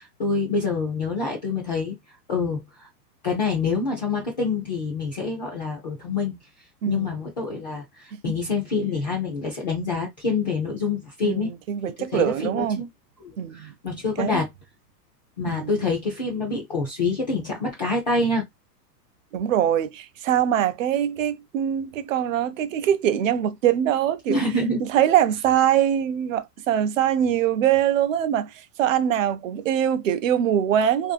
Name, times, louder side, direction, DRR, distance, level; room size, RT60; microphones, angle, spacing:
voice 1, 0.0-2.0 2.3-2.9 3.2-6.4 6.9-11.5 12.1-12.9 13.2-14.5 15.4-18.4 24.3-24.8, left 3 dB, 30° left, 0.4 m, -26 dB
voice 2, 11.2-12.8 13.4-13.7 14.2-14.4 15.5-15.8 19.3-24.4 24.8-31.1, right 10 dB, 55° right, 0.5 m, -23 dB
3.0 x 2.6 x 2.4 m
hypercardioid pair, 160°, 50 cm